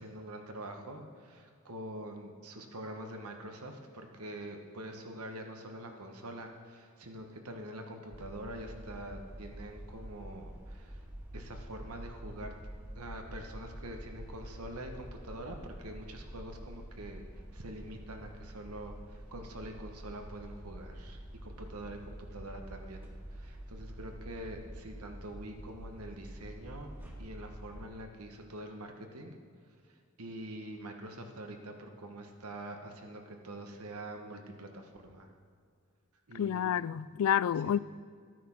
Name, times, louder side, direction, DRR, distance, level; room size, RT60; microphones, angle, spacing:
voice 1, 0.0-11.0 11.3-12.5 12.9-17.2 17.5-26.9 27.2-29.3 30.2-35.3 36.3-36.7 37.6-37.8, right 1 dB, 80° right, 1.4 m, -45 dB
sound 1, 8.1-27.9, right 1 dB, 10° right, 1.7 m, -47 dB
voice 2, 36.3-37.8, left 9 dB, 70° left, 0.3 m, -29 dB
12.5 x 9.2 x 6.1 m
head